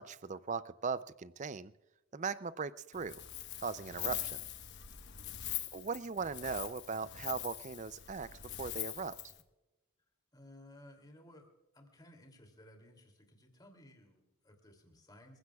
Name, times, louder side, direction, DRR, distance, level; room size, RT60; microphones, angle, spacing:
voice 1, 0.0-1.7 2.1-3.2 3.6-4.4 5.7-8.3 8.6-9.2, right 5 dB, 35° right, 16 dB, 0.4 m, -39 dB
Wind, 2.9-9.4, left 12 dB, 50° left, 1.1 m, -43 dB
voice 2, 10.3-11.5 11.7-15.4, left 1 dB, 20° left, 4 dB, 2.7 m, -58 dB
28.0 x 15.5 x 2.3 m, 1.0 s
head